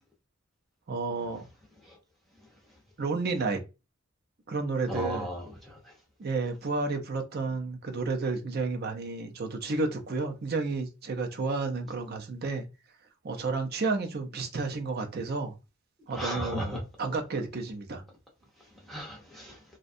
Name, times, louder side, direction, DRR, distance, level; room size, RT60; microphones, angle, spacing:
voice 1, 0.9-1.4 3.0-3.6 4.5-5.3 6.2-12.6 13.2-15.5 16.1-18.0, right 3 dB, 45° right, 0.5 m, -31 dB
voice 2, 4.9-5.9 16.1-16.8 18.9-19.6, equal, ahead, 0.6 m, -36 dB
2.6 x 2.2 x 2.5 m
head